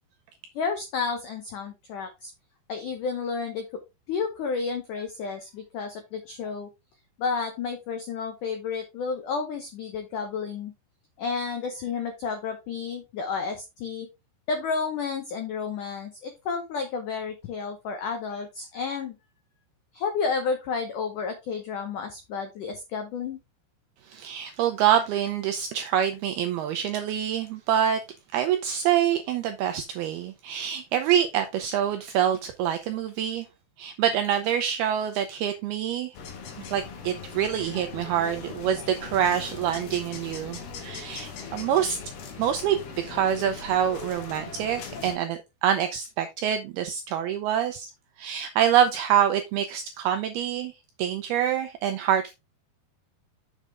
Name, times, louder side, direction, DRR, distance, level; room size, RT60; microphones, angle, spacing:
voice 1, 0.5-2.3 2.7-3.7 4.1-6.7 7.2-10.7 11.2-14.1 14.5-19.2 19.9-23.4, left 5 dB, 85° left, 1.8 m, -31 dB
voice 2, 24.1-28.0 28.3-33.5 33.8-36.2 36.6-42.0 42.4-47.9 48.2-50.7 51.0-52.3, right 9 dB, 85° right, 2.2 m, -26 dB
sound 1, 36.1-45.2, left 5 dB, 60° left, 3.3 m, -40 dB
7.4 x 6.6 x 3.5 m
omnidirectional pair, 5.3 m